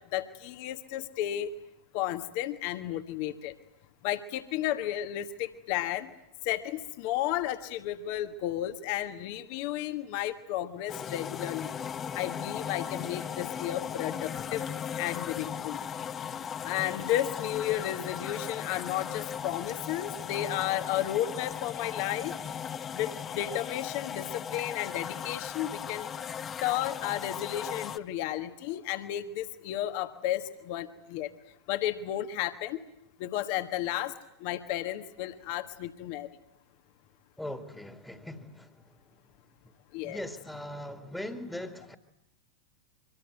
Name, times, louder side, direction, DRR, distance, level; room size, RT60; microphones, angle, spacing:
voice 1, 0.1-1.5 1.9-3.5 4.0-6.1 6.4-11.7 12.1-14.6 15.0-15.8 16.6-22.3 22.9-26.1 26.6-31.3 31.7-32.8 33.2-34.1 34.4-36.3 39.9-40.2, left 13 dB, 45° left, 9 dB, 1.5 m, -33 dB
sound 1, 10.9-28.0, left 8 dB, 25° left, 1.0 m, -37 dB
voice 2, 37.4-38.8 40.0-41.9, left 1 dB, 5° left, 7 dB, 2.0 m, -40 dB
24.5 x 24.0 x 9.1 m, 0.78 s
figure-of-eight pair, 90°, 0 cm